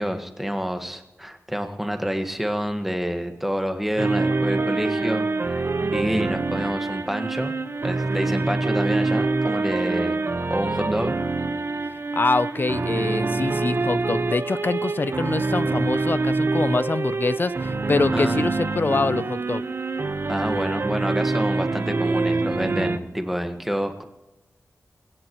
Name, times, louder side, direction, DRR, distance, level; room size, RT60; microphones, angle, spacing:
voice 1, 0.0-7.5 7.8-10.2 10.5-11.2 18.1-18.4 20.3-24.0, equal, 5° right, 5 dB, 1.6 m, -28 dB
sound 1, 4.0-23.0, right 3 dB, 55° right, 1.1 m, -25 dB
voice 2, 12.1-19.6, left 3 dB, 40° left, 15 dB, 0.6 m, -25 dB
27.5 x 16.5 x 3.1 m, 0.95 s
wide cardioid pair, 95°, 5 cm